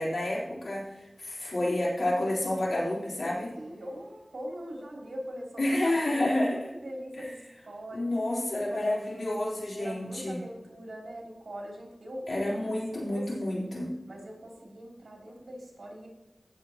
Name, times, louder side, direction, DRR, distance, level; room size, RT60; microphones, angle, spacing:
voice 1, 0.0-3.5 5.6-6.6 7.2-7.3 7.9-10.4 12.3-13.9, left 1 dB, 85° left, -5 dB, 3.8 m, -29 dB
voice 2, 3.5-8.1 8.6-9.3 9.7-13.6 14.1-16.1, equal, 85° right, -1 dB, 3.0 m, -42 dB
15.5 x 7.5 x 2.9 m, 1.0 s
wide cardioid pair, 55°, 0 cm